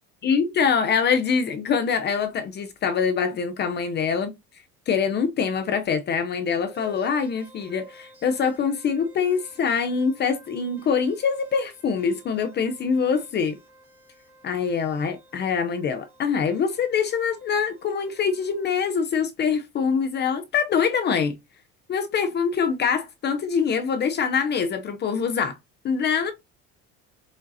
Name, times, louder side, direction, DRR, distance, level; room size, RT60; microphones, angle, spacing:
voice 1, 0.2-4.3 4.9-13.6 14.4-21.4 21.9-25.6 25.8-26.3, left 6 dB, 35° left, 0.7 m, -24 dB
sound 1, 6.5-18.8, equal, 10° right, 3.6 m, -53 dB
7.2 x 5.1 x 2.8 m
cardioid pair, 150°, 29 cm